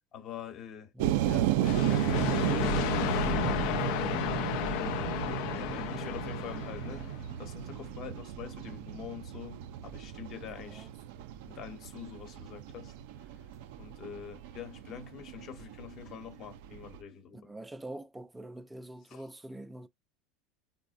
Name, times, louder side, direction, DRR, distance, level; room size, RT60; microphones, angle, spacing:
voice 1, 0.1-0.9 1.3-1.5 1.8-3.3 3.9-4.4 5.5-7.1 7.4-10.9 11.5-12.9 13.8-17.5 19.1-19.3, left 8 dB, 50° left, 1.0 m, -45 dB
sound 1, 1.0-17.0, right 12 dB, 75° right, 0.4 m, -34 dB
sound 2, 1.6-7.3, left 9 dB, 70° left, 0.4 m, -33 dB
voice 2, 10.6-10.9 17.3-19.9, right 1 dB, 10° right, 0.4 m, -45 dB
4.2 x 2.0 x 2.5 m
supercardioid pair, 105°, 0 cm